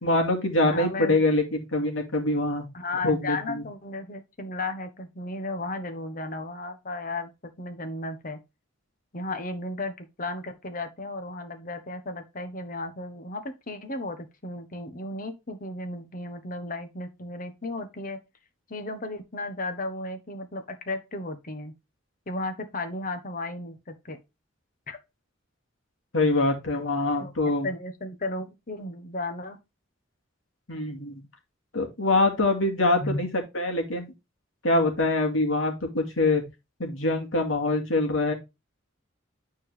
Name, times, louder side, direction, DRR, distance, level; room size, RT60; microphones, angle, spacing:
voice 1, 0.0-2.7 3.0-3.6 26.1-27.7 30.7-31.2 31.7-33.3 33.5-34.1 34.6-36.4 36.8-38.3, left 2 dB, 85° left, 2.5 m, -24 dB
voice 2, 0.7-1.2 2.7-7.3 7.6-8.4 9.1-18.2 18.7-21.7 22.3-24.2 24.9-25.0 27.2-27.3 27.6-29.6 33.0-33.2, left 2 dB, 45° left, 1.3 m, -34 dB
9.8 x 4.6 x 3.4 m
head